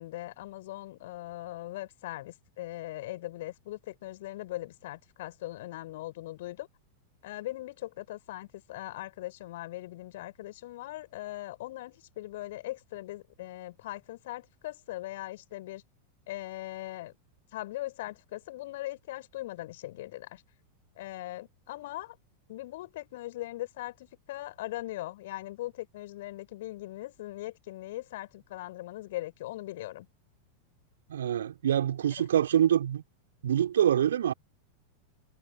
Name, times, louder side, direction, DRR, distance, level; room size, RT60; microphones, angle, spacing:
voice 1, 0.0-6.7 7.2-15.8 16.3-17.1 17.5-20.4 21.0-22.2 22.5-30.1, left 16 dB, 55° left, 6.7 m, -40 dB
voice 2, 31.1-33.0 33.4-34.3, right 10 dB, 65° right, 4.1 m, -25 dB
figure-of-eight pair, 90°, 0 cm